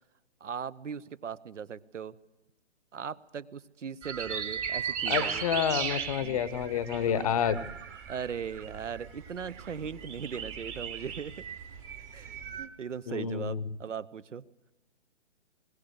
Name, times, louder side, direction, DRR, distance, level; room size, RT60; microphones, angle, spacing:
voice 1, 0.4-2.2 2.9-5.4 6.2-6.4 7.1-7.3 8.1-11.4 12.1-14.4, right 7 dB, 85° right, 18 dB, 1.0 m, -39 dB
sound 1, 4.0-12.7, right 7 dB, 15° right, 0.9 m, -37 dB
voice 2, 5.1-7.7 13.1-13.8, left 8 dB, 30° left, 17 dB, 0.8 m, -29 dB
21.0 x 17.5 x 8.0 m, 1.0 s
hypercardioid pair, 155°, 36 cm